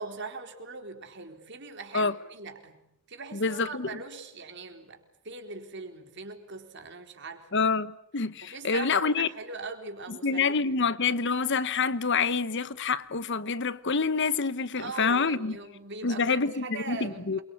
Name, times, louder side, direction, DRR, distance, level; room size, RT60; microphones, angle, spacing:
voice 1, 0.0-2.8 3.1-7.6 8.4-10.6 14.8-17.4, right 3 dB, 55° right, 4.0 m, -41 dB
voice 2, 3.3-4.0 7.5-9.3 10.1-15.6 16.0-17.4, left 4 dB, 55° left, 1.0 m, -27 dB
28.0 x 23.5 x 8.5 m
head